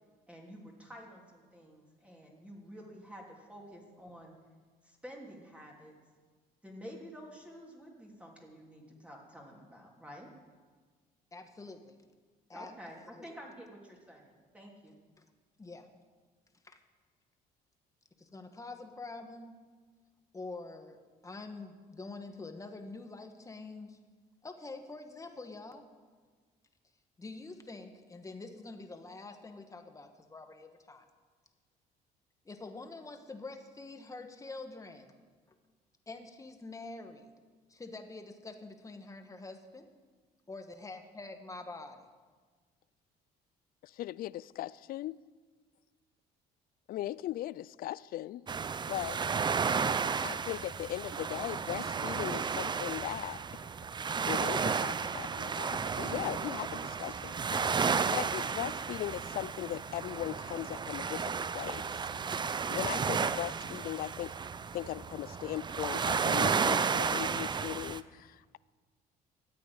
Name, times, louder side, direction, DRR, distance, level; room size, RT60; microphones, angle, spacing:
voice 1, 0.3-4.4 4.8-5.9 6.6-10.3 12.5-15.0, equal, 5° right, -1 dB, 3.1 m, -50 dB
voice 2, 11.3-12.0 12.5-12.7 13.1-13.3 15.2-15.3 15.6-15.9 16.6-16.8 18.2-19.6 20.3-24.0 24.4-25.8 27.2-31.1 32.4-35.2 35.5-35.6 36.1-37.3 37.7-39.9 40.5-42.1, left 3 dB, 20° left, 6 dB, 1.6 m, -46 dB
voice 3, 43.8-45.2 46.9-48.4 48.9-49.2 50.2-53.4 54.0-61.8 62.7-64.4 64.7-68.6, left 14 dB, 60° left, 20 dB, 0.4 m, -39 dB
sound 1, 48.5-68.0, right 5 dB, 25° right, 0.5 m, -33 dB
13.5 x 8.5 x 9.7 m, 1.5 s
cardioid pair, 110°, 17 cm